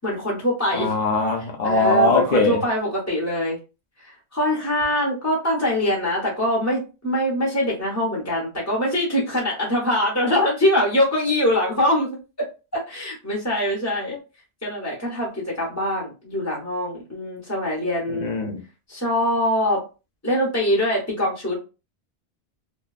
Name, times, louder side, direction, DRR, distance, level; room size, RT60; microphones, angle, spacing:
voice 1, 0.0-0.9 1.6-3.6 4.0-12.1 12.7-14.1 14.6-18.3 18.9-19.8 20.2-21.6, left 1 dB, 15° left, 0.7 m, -23 dB
voice 2, 0.7-2.6 18.1-18.6, left 2 dB, 50° left, 0.6 m, -21 dB
2.6 x 2.2 x 2.3 m
omnidirectional pair, 1.1 m